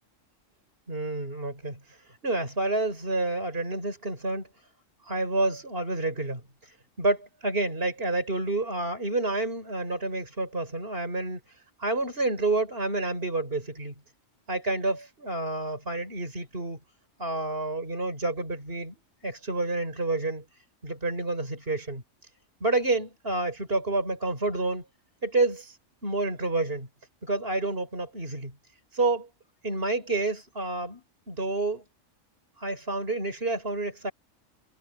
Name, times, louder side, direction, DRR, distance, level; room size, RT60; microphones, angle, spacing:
voice 1, 0.9-1.8 2.2-4.5 5.1-6.4 7.0-11.4 11.8-14.0 14.5-16.8 17.2-19.0 19.2-20.4 20.8-22.0 22.6-24.8 25.2-25.8 26.0-26.9 27.2-28.5 28.9-29.3 29.6-31.8 32.6-34.1, right 2 dB, 45° right, 5.8 m, -29 dB
omnidirectional pair, 1.4 m